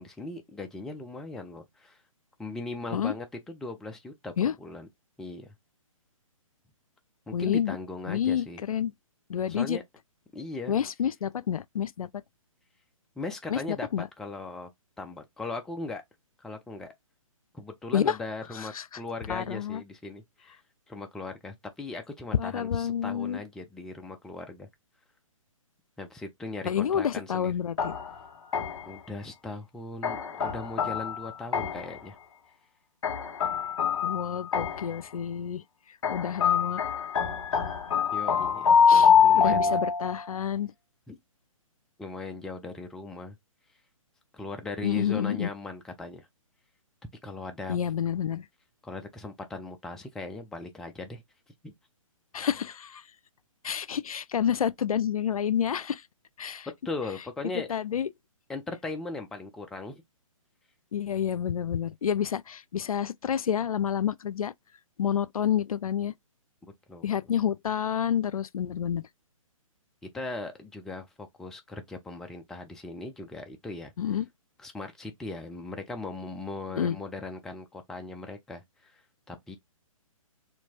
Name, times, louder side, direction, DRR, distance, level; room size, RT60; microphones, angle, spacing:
voice 1, 0.0-2.0 2.4-4.9 5.2-5.5 7.3-8.6 9.5-9.8 10.3-10.7 13.2-13.9 14.2-14.7 15.0-16.0 16.4-16.9 17.5-20.6 20.9-24.7 26.0-27.5 28.9-32.2 38.1-38.7 39.2-39.8 41.1-41.2 42.0-43.4 44.3-46.3 47.2-47.8 48.8-51.2 51.6-51.7 56.8-57.7 58.5-60.0 66.6-67.1 70.1-73.9 74.6-79.0 79.3-79.6, left 3 dB, 5° left, 0.3 m, -38 dB
voice 2, 7.3-7.8 8.1-8.9 9.3-9.8 10.7-12.1 13.5-13.6 13.9-14.1 17.9-18.2 18.5-18.9 19.3-19.8 22.3-23.4 26.6-27.9 34.0-35.6 36.1-36.8 38.9-40.7 44.8-45.5 47.7-48.5 52.3-53.0 53.6-56.0 56.4-56.7 57.7-58.1 60.9-64.5 65.0-66.1 67.0-69.1 74.0-74.3 76.7-77.0, left 9 dB, 80° left, 0.4 m, -29 dB
sound 1, 27.8-29.0 30.0-32.0 33.0-35.0 36.0-40.3, left 7 dB, 55° left, 1.7 m, -25 dB
4.4 x 2.7 x 2.8 m
hypercardioid pair, 135°, 18 cm